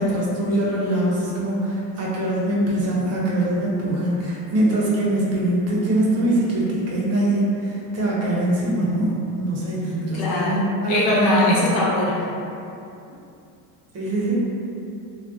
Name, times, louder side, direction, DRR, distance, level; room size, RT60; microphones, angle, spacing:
voice 1, 0.0-11.6 13.9-14.4, right 1 dB, 30° right, -5 dB, 0.6 m, -22 dB
voice 2, 10.1-10.5 10.9-12.2, left 2 dB, 80° left, -6 dB, 0.8 m, -21 dB
2.3 x 2.1 x 2.6 m, 2.7 s
supercardioid pair, 90°, 49 cm